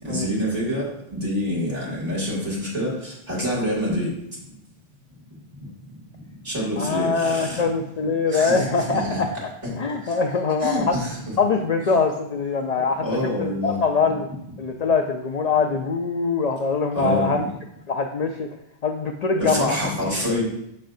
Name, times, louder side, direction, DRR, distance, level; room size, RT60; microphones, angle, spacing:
voice 1, 0.0-4.1 6.4-7.7 8.3-8.7 8.9-9.2 9.6-9.7 10.6-11.1 13.0-13.8 16.9-17.5 19.4-20.4, equal, 35° right, -6 dB, 2.5 m, -26 dB
voice 2, 6.8-9.3 9.8-11.0 11.4-13.1 13.4-14.3 14.6-17.5 17.9-18.5 18.8-19.8, left 4 dB, 55° left, 4 dB, 0.4 m, -23 dB
6.3 x 6.3 x 2.6 m, 0.78 s
omnidirectional pair, 1.1 m